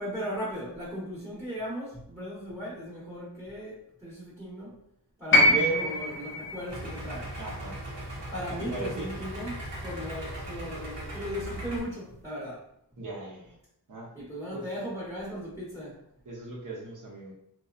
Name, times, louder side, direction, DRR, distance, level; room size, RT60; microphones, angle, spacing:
voice 1, 0.0-4.7 5.2-7.3 8.3-9.6 9.8-12.6 14.1-16.0, equal, 10° right, -8 dB, 1.0 m, -37 dB
sound 1, 5.3-9.5 10.7-10.8, left 1 dB, 30° left, 0.7 m, -26 dB
voice 2, 5.5-5.9 7.4-7.8 8.6-9.1 13.0-13.6 13.9-14.1 14.5-14.7 16.2-17.3, right 3 dB, 50° right, -2 dB, 0.9 m, -36 dB
Idling, 6.7-11.8, right 1 dB, 80° right, 0.9 m, -38 dB
2.7 x 2.2 x 2.4 m, 0.74 s
wide cardioid pair, 55°, 42 cm